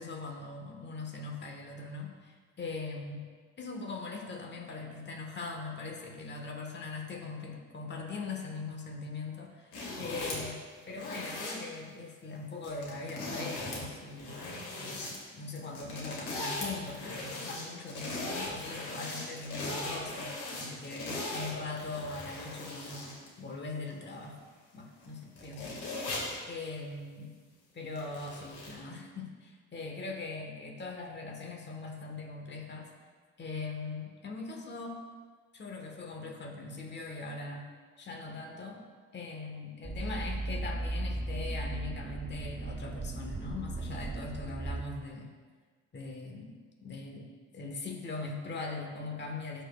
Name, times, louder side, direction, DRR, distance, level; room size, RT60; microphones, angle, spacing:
voice 1, 0.0-3.3 3.6-14.4 14.8-20.3 20.6-24.4 24.7-25.9 26.5-27.3 27.7-32.9 33.4-35.0 35.5-37.7 38.0-38.8 39.1-45.3 45.9-46.5 46.8-47.3 47.5-49.6, left 3 dB, 35° left, 1 dB, 1.3 m, -41 dB
sound 1, 9.7-10.5 10.9-11.5 12.6-13.8 14.1-15.2 15.6-23.3 23.9-24.0 25.0-25.1 25.4-26.4 28.0-28.7, left 2 dB, 85° left, 1.8 m, -39 dB
sound 2, 39.8-44.8, right 2 dB, 15° right, 0.4 m, -36 dB
13.0 x 4.5 x 2.3 m, 1.5 s
cardioid pair, 90°, 30 cm